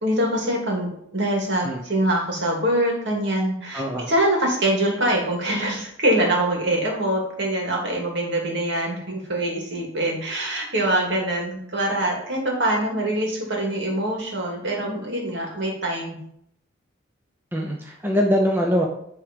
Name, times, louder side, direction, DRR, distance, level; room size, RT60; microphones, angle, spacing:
voice 1, 0.0-16.2, right 1 dB, 55° right, -1 dB, 2.3 m, -24 dB
voice 2, 3.7-4.1 17.5-18.9, equal, 10° right, -1 dB, 0.7 m, -22 dB
10.0 x 3.6 x 5.2 m, 0.71 s
head